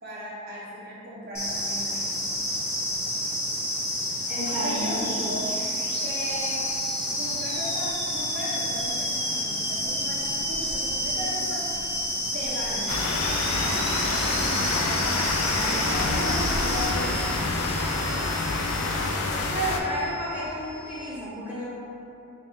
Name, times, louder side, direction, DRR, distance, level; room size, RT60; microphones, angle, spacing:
voice 1, 0.0-2.1 4.5-5.6 6.0-6.7 7.1-11.9 12.3-13.0 14.1-17.4, equal, 45° right, -7 dB, 0.5 m, -36 dB
sound 1, 1.3-16.8, equal, 15° left, 0.7 m, -29 dB
sound 2, 4.3-21.1, equal, 50° left, 0.8 m, -40 dB
voice 2, 4.3-5.0 19.5-21.7, equal, 5° right, -9 dB, 1.0 m, -31 dB
sound 3, 12.9-19.8, left 3 dB, 85° left, 0.4 m, -27 dB
3.5 x 2.3 x 4.2 m, 2.9 s
head